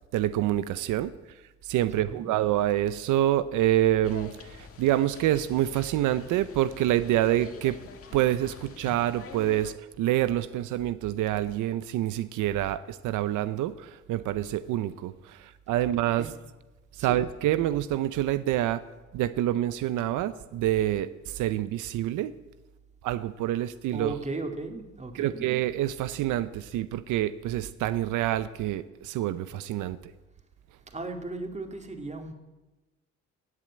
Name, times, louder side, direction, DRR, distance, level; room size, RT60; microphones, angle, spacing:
voice 1, 0.1-1.1 1.6-7.8 8.1-16.3 17.0-18.8 19.1-22.3 23.0-24.2 25.1-30.0, right 13 dB, 90° right, 14 dB, 0.6 m, -27 dB
voice 2, 2.0-2.3 16.2-16.3 17.1-17.2 23.9-25.4 30.9-32.3, right 2 dB, 25° right, 5 dB, 2.3 m, -36 dB
sound 1, 4.0-9.7, left 5 dB, 50° left, 1.7 m, -46 dB
17.5 x 7.6 x 8.5 m, 1.1 s
cardioid pair, 90°, 30 cm